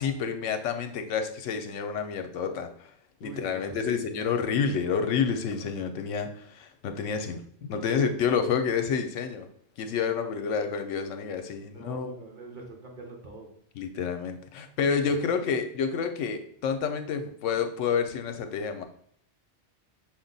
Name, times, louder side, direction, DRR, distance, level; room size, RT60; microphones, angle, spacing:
voice 1, 0.0-2.9 3.2-9.5 9.8-12.2 13.7-18.8, left 6 dB, 80° left, 7 dB, 0.9 m, -29 dB
voice 2, 3.2-4.1 11.7-13.5 15.4-15.5, right 2 dB, 40° right, 0 dB, 1.1 m, -43 dB
6.1 x 2.2 x 3.9 m, 0.66 s
omnidirectional pair, 1.3 m